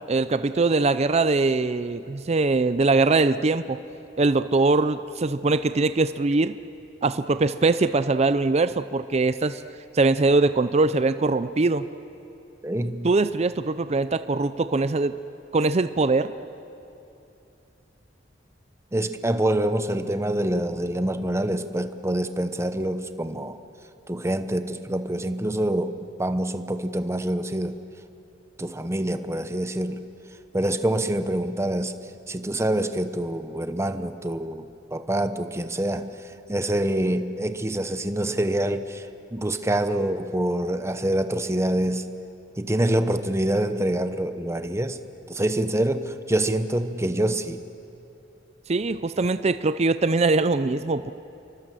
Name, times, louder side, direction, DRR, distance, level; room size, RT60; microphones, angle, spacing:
voice 1, 0.1-3.8 4.2-6.6 7.0-9.6 9.9-11.9 13.0-15.1 15.5-16.3 48.7-51.1, right 3 dB, 35° right, 12 dB, 0.5 m, -22 dB
voice 2, 12.6-13.1 18.9-23.6 24.1-27.8 28.6-30.0 30.5-31.9 32.3-42.0 42.6-45.0 45.3-47.6, right 1 dB, 15° right, 9 dB, 1.0 m, -26 dB
29.0 x 23.5 x 7.7 m, 2.8 s
head